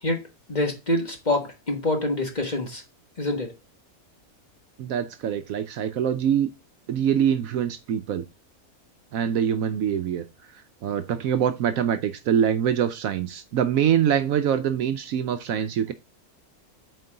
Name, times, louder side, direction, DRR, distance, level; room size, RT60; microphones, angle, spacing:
voice 1, 0.5-2.8 3.2-3.5, left 1 dB, 30° left, 1.4 m, -26 dB
voice 2, 4.8-6.5 6.9-8.2 9.1-10.2 10.8-15.9, right 9 dB, 75° right, 1.0 m, -24 dB
8.1 x 4.6 x 3.8 m
omnidirectional pair, 1.5 m